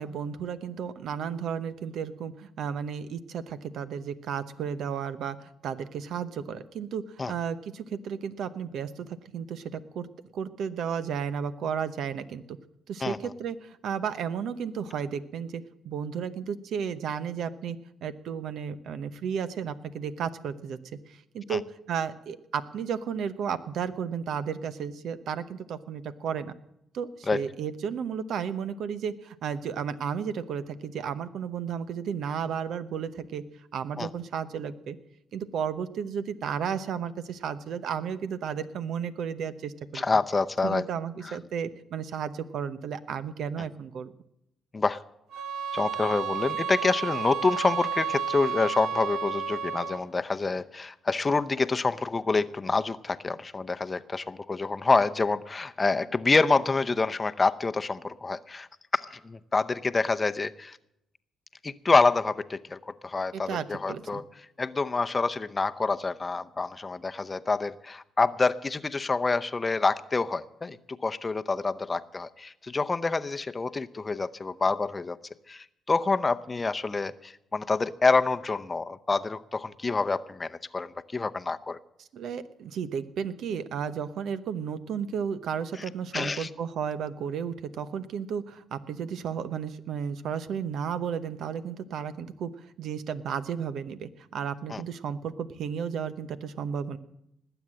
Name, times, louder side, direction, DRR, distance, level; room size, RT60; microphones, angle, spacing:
voice 1, 0.0-7.0 7.3-10.1 10.3-12.6 12.9-20.8 21.1-21.6 21.9-26.5 26.9-33.4 33.7-35.0 35.3-40.0 40.6-44.1 63.3-64.2 82.0-97.0, right 7 dB, 70° right, 13 dB, 0.9 m, -33 dB
voice 2, 39.9-40.8 44.7-45.0 45.7-58.7 58.9-60.8 61.6-64.2 64.6-70.8 71.0-75.2 75.5-81.8 86.1-86.5 94.7-94.8, left 3 dB, 25° left, 11 dB, 0.7 m, -27 dB
sound 1, 45.3-50.1, right 7 dB, 90° right, 1.4 m, -32 dB
20.0 x 8.1 x 7.5 m, 0.81 s
cardioid pair, 90°, 0 cm